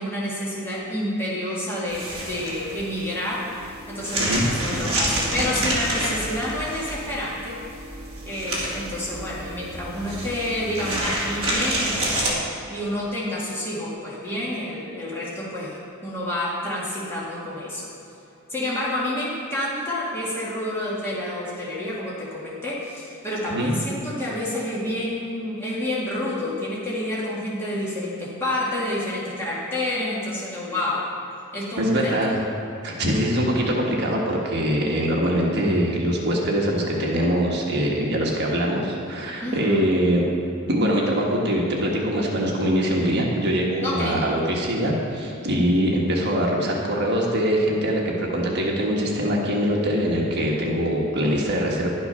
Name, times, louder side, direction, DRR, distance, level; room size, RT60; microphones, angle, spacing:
voice 1, 0.0-3.5 3.9-7.6 8.3-17.9 18.5-31.1 31.5-32.1 39.4-39.9 43.8-44.2, left 1 dB, 10° left, -8 dB, 1.9 m, -29 dB
sound 1, 1.9-12.3, right 1 dB, 25° right, 2.3 m, -29 dB
voice 2, 31.8-32.4 32.8-40.2 40.7-51.9, equal, 50° right, -2 dB, 1.4 m, -23 dB
11.5 x 8.2 x 5.6 m, 2.8 s
head